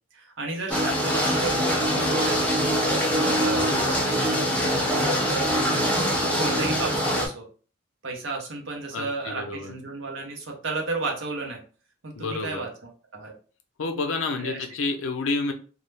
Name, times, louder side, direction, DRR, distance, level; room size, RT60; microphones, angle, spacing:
voice 1, 0.1-2.4 3.0-7.5 8.0-11.6 12.0-13.3 14.4-14.6, right 3 dB, 80° right, 2 dB, 0.7 m, -33 dB
sound 1, 0.7-7.3, equal, 5° left, 0.4 m, -23 dB
voice 2, 8.9-9.7 12.2-12.6 13.8-15.5, left 3 dB, 85° left, 5 dB, 0.5 m, -29 dB
2.3 x 2.0 x 3.1 m, 0.39 s
head